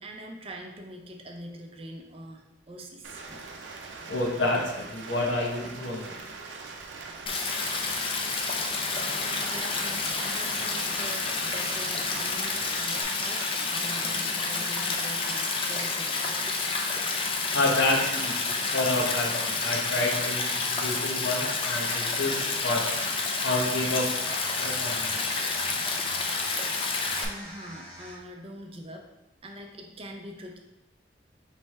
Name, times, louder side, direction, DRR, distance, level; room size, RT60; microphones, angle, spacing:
voice 1, 0.0-3.4 9.2-16.6 27.2-29.1 29.4-30.6, right 1 dB, 30° right, 2 dB, 0.5 m, -43 dB
Rain, 3.0-13.0, right 3 dB, 85° right, 0.5 m, -42 dB
voice 2, 4.1-6.1 17.5-22.8 23.4-24.1 24.6-25.2, left 2 dB, 80° left, -1 dB, 0.9 m, -29 dB
Stream, 7.3-27.3, left 3 dB, 30° left, 0.4 m, -29 dB
sound 1, 22.9-28.4, equal, 5° left, 0.7 m, -45 dB
3.2 x 3.2 x 4.5 m, 0.96 s
head